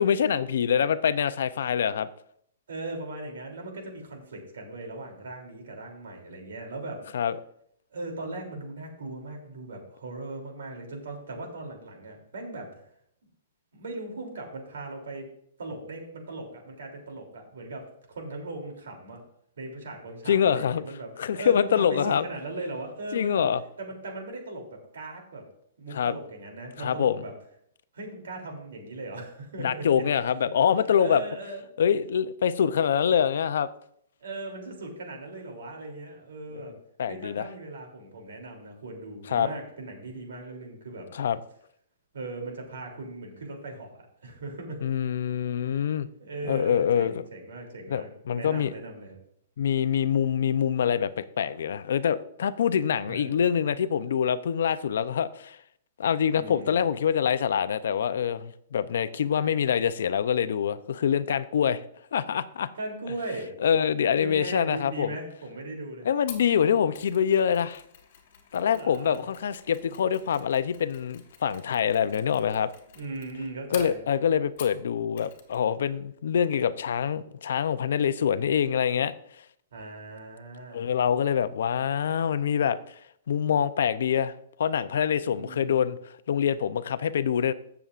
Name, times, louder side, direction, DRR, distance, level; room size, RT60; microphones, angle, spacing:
voice 1, 0.0-2.1 7.1-7.4 20.3-20.8 21.2-22.2 23.1-23.6 25.9-26.1 26.8-27.2 29.6-31.2 31.8-33.7 37.0-37.5 39.3-39.5 41.1-41.4 44.8-46.1 46.4-47.2 47.9-48.7 49.6-55.6 56.0-61.8 62.1-62.7 63.6-65.1 66.0-67.8 68.5-72.7 73.7-79.1 80.7-82.8 83.3-86.0 86.3-87.5, left 8 dB, 65° left, 0.5 m, -25 dB
voice 2, 2.7-7.1 7.9-12.8 13.7-15.3 15.6-19.2 19.6-23.5 23.8-25.4 25.8-27.3 27.9-30.0 31.0-31.6 34.2-36.8 37.1-41.1 42.1-44.9 46.2-49.2 53.1-53.4 56.3-56.7 62.7-63.6 64.2-66.1 68.7-69.2 72.9-74.0 79.7-80.8 85.2-85.9, right 2 dB, 90° right, 2.9 m, -38 dB
Mechanisms, 66.3-74.9 75.2-75.6 75.9-76.0, left 8 dB, 45° left, 1.4 m, -48 dB
15.0 x 6.9 x 2.5 m
hypercardioid pair, 175°, 0 cm